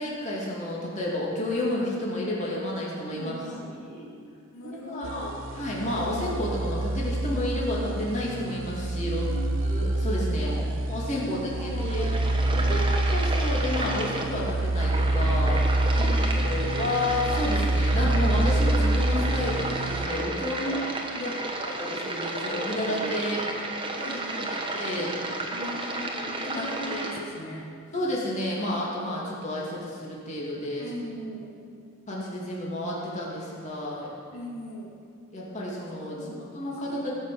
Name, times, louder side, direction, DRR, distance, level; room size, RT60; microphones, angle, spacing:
voice 1, 0.0-3.3 3.7-4.2 4.6-5.3 5.5-9.2 9.6-10.5 10.9-12.1 12.7-15.6 15.9-20.6 21.2-21.4 21.7-23.4 24.3-25.1 26.5-27.2 27.9-30.9 32.1-34.1 35.3-37.1, left 1 dB, 35° left, -5 dB, 2.8 m, -31 dB
voice 2, 3.1-3.8 4.5-5.5 8.9-9.5 10.3-10.8 11.2-13.1 15.9-16.7 20.6-21.4 23.9-24.6 25.5-27.7 30.8-31.5 34.3-34.9 36.1-37.0, equal, 70° left, -4 dB, 2.2 m, -39 dB
sound 1, 5.0-20.1, right 1 dB, 60° right, 0.6 m, -26 dB
sound 2, 11.6-27.2, right 2 dB, 25° right, 1.2 m, -32 dB
17.0 x 6.4 x 7.6 m, 2.4 s
head